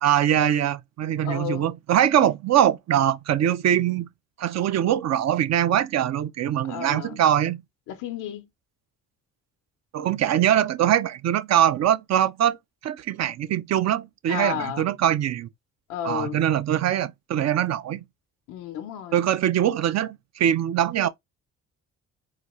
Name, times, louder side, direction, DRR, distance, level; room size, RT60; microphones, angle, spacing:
voice 1, 0.0-4.1 4.4-7.6 9.9-12.6 12.8-15.5 16.0-18.0 19.1-21.1, right 10 dB, 60° right, 0.6 m, -22 dB
voice 2, 1.2-1.7 2.2-2.3 6.7-7.2 7.9-8.5 14.3-14.8 15.9-16.4 18.5-19.2, left 9 dB, 85° left, 0.7 m, -32 dB
4.0 x 2.3 x 3.0 m
cardioid pair, 90°, 30 cm